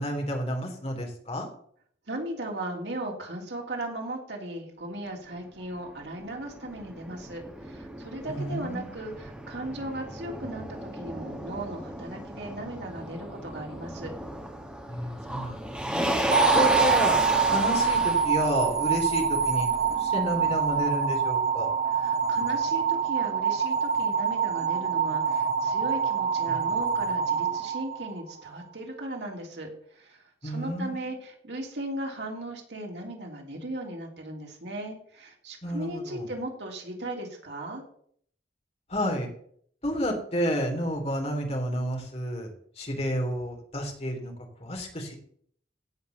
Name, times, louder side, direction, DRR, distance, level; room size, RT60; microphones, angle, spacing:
voice 1, 0.0-1.5 8.3-8.9 14.9-16.2 16.5-17.2 17.5-21.7 26.5-26.6 30.4-31.1 35.6-36.3 38.9-39.3 39.8-44.3 44.6-45.2, equal, 35° left, 2 dB, 3.1 m, -31 dB
voice 2, 2.1-14.1 21.9-37.8, right 1 dB, 75° right, 1 dB, 3.2 m, -37 dB
Motor vehicle (road), 5.7-20.8, right 1 dB, 5° right, 1.8 m, -33 dB
sound 1, 16.3-28.5, right 6 dB, 55° right, 1.3 m, -25 dB
16.5 x 5.4 x 6.9 m, 0.62 s
head